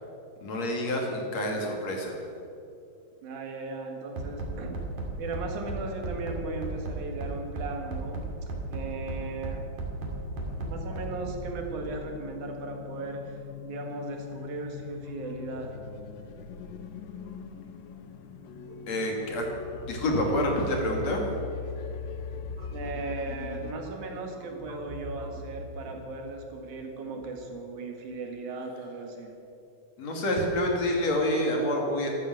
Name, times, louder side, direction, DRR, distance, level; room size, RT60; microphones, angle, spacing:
voice 1, 0.4-2.2 18.9-19.5 19.9-21.2 30.0-32.1, left 1 dB, 60° left, 1 dB, 3.5 m, -27 dB
voice 2, 3.2-4.8 5.2-8.2 8.7-9.6 10.7-15.7 18.7-18.8 22.7-29.3, right 3 dB, 85° right, 3 dB, 3.4 m, -37 dB
Bass drum, 4.2-11.5, right 3 dB, 65° right, 3.7 m, -34 dB
sound 1, 10.0-23.7, left 6 dB, 80° left, 1.1 m, -40 dB
sound 2, 22.1-27.5, left 1 dB, 40° right, 1.1 m, -45 dB
14.5 x 12.5 x 7.7 m, 2.7 s
omnidirectional pair, 3.4 m